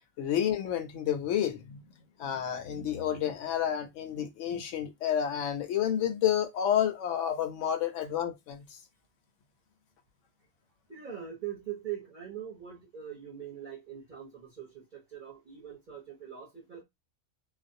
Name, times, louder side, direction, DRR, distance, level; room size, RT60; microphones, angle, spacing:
voice 1, 0.2-1.8 2.2-8.8, left 9 dB, 70° left, 0.8 m, -30 dB
voice 2, 10.9-16.8, right 10 dB, 45° right, 0.7 m, -42 dB
2.5 x 2.0 x 2.6 m
omnidirectional pair, 1.5 m